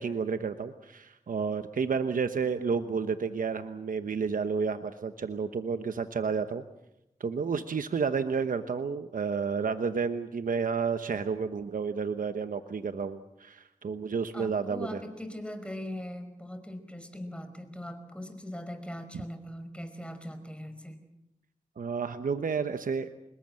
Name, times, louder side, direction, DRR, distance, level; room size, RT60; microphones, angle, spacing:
voice 1, 0.0-6.6 7.2-15.0 21.8-23.1, right 5 dB, 90° right, 9 dB, 1.0 m, -31 dB
voice 2, 14.3-21.0, left 1 dB, 10° left, 8 dB, 5.1 m, -40 dB
25.5 x 21.5 x 7.7 m, 0.85 s
cardioid pair, 50°, 14 cm